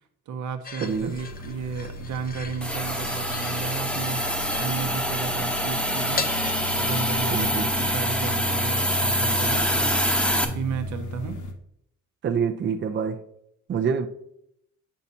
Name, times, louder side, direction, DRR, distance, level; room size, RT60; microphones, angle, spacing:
voice 1, 0.3-6.3 6.7-11.4, right 5 dB, 75° right, 0.8 m, -33 dB
sound 1, 0.6-6.5, left 5 dB, 30° left, 0.6 m, -38 dB
sound 2, 0.8-11.5, left 1 dB, 75° left, 1.0 m, -35 dB
voice 2, 0.8-1.2 7.3-7.7 12.2-13.2 13.7-14.1, right 6 dB, 40° right, 0.5 m, -26 dB
Hiss, 2.6-10.4, equal, 5° left, 0.9 m, -26 dB
7.0 x 5.6 x 2.7 m
cardioid pair, 90°, 30 cm